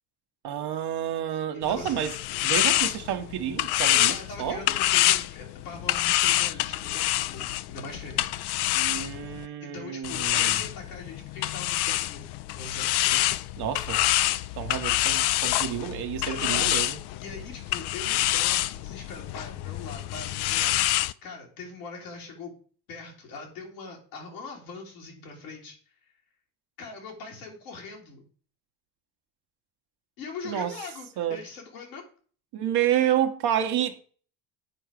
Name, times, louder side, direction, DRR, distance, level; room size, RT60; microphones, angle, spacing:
voice 1, 0.4-2.2 2.4-4.6 8.7-10.6 13.6-14.0 14.6-17.0 30.4-30.7 31.2-31.4 32.5-34.0, right 10 dB, 60° right, 1.3 m, -29 dB
voice 2, 1.5-2.0 4.1-8.3 9.3-13.3 16.2-16.8 17.2-22.5 22.9-25.8 26.8-28.2 30.2-32.1, left 3 dB, 85° left, 2.9 m, -42 dB
sound 1, 1.6-9.5 10.0-21.1, left 15 dB, 60° left, 0.5 m, -26 dB
8.9 x 4.7 x 5.1 m
hypercardioid pair, 70°, 44 cm